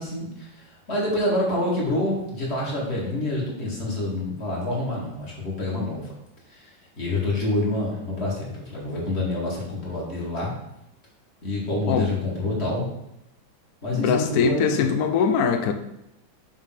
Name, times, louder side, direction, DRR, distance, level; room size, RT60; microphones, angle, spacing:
voice 1, 0.0-6.1 6.5-6.7 7.0-10.5 11.4-12.9 13.8-14.8, left 1 dB, 35° left, -5 dB, 2.0 m, -27 dB
voice 2, 13.9-15.7, left 6 dB, 65° left, 6 dB, 0.9 m, -22 dB
6.3 x 3.3 x 5.8 m, 0.85 s
omnidirectional pair, 2.1 m